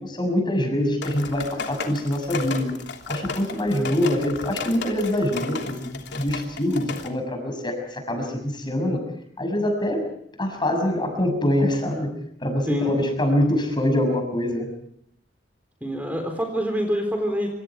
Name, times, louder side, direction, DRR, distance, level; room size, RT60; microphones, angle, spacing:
voice 1, 0.2-2.8 3.1-9.0 9.4-10.1 10.4-12.1 12.4-14.7, left 1 dB, 25° left, 5 dB, 6.5 m, -24 dB
sound 1, 1.0-7.1, left 4 dB, 65° left, 3.1 m, -34 dB
voice 2, 12.7-13.0 15.8-17.5, equal, 10° right, 3 dB, 4.0 m, -25 dB
27.0 x 26.5 x 4.8 m, 0.72 s
head